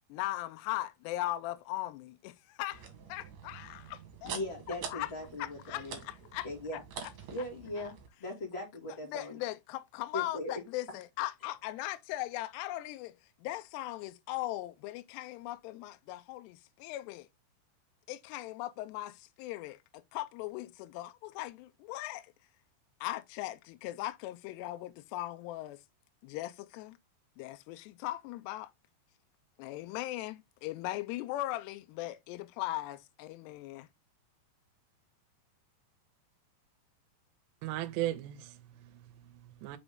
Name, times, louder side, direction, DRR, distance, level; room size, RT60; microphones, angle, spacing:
voice 1, 0.0-4.4 4.7-5.1 5.4-6.5 7.0-7.1 9.1-13.2 13.4-17.3 18.1-22.3 23.0-25.8 26.2-27.0 27.4-28.7 29.6-33.9, left 16 dB, 80° left, 2.5 m, -39 dB
sound 1, 2.7-8.1, right 6 dB, 60° right, 2.6 m, -46 dB
voice 2, 4.2-6.0 6.4-6.8 7.3-7.9 8.2-9.4 10.1-10.6, left 1 dB, 25° left, 1.5 m, -39 dB
voice 3, 37.6-39.8, right 14 dB, 80° right, 2.8 m, -37 dB
5.9 x 5.4 x 3.5 m
omnidirectional pair, 5.1 m